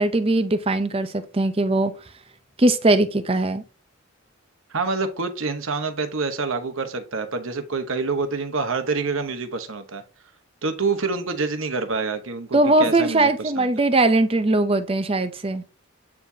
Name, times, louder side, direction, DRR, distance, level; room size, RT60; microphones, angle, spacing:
voice 1, 0.0-1.9 2.6-3.6 12.5-15.6, right 2 dB, 25° right, 0.6 m, -20 dB
voice 2, 4.7-10.0 10.6-13.7, right 4 dB, 70° right, 1.1 m, -27 dB
8.4 x 4.7 x 2.8 m
head